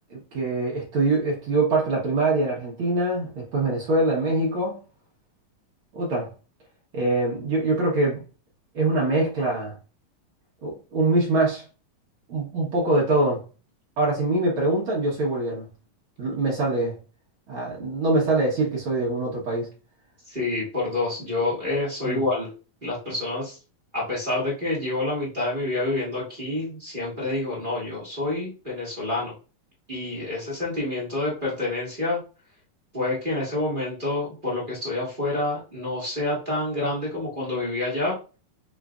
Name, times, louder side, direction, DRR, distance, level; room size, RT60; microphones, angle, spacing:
voice 1, 0.1-4.8 5.9-6.3 6.9-8.2 8.7-9.7 10.6-11.6 12.3-13.4 14.0-15.6 16.2-16.9 17.5-19.7 22.0-22.2, right 2 dB, 65° right, 1.3 m, -24 dB
voice 2, 20.2-22.5 22.8-23.6 23.9-29.3 29.9-32.2 32.9-38.2, left 2 dB, 40° right, 0.7 m, -28 dB
6.7 x 3.2 x 2.4 m
omnidirectional pair, 4.0 m